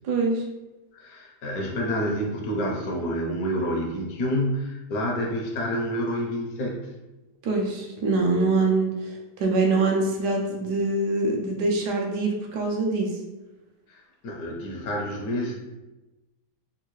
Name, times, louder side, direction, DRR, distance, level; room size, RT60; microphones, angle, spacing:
voice 1, 0.0-0.4 7.4-13.2, right 3 dB, 80° right, 1 dB, 1.2 m, -24 dB
voice 2, 0.9-6.9 13.9-15.6, equal, 70° left, -1 dB, 1.0 m, -28 dB
3.6 x 2.3 x 2.9 m, 1.1 s
omnidirectional pair, 1.8 m